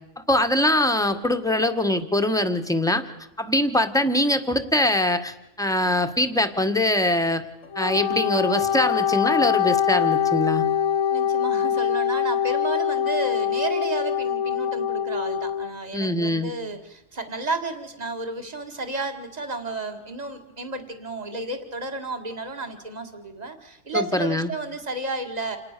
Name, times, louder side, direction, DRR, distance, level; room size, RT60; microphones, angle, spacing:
voice 1, 0.3-3.0 3.4-7.4 7.7-10.6 15.9-16.5 23.9-24.5, left 1 dB, 5° left, 7 dB, 1.5 m, -23 dB
Wind instrument woodwind instrument, 7.6-15.7, left 8 dB, 80° left, 2.1 m, -24 dB
voice 2, 11.1-25.6, right 2 dB, 30° right, 5 dB, 2.2 m, -32 dB
28.0 x 19.5 x 6.8 m, 0.89 s
omnidirectional pair, 1.4 m